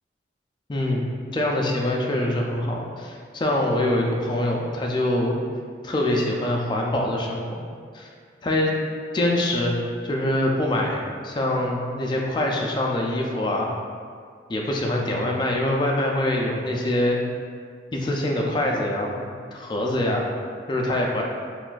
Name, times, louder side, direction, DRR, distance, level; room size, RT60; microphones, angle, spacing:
voice 1, 0.7-1.0 1.3-5.4 5.8-7.6 7.9-8.1 8.4-8.8 9.1-13.7 14.5-17.2 17.9-20.3 20.7-21.2, left 1 dB, 25° left, -1 dB, 0.3 m, -24 dB
4.0 x 2.2 x 2.4 m, 2.1 s
head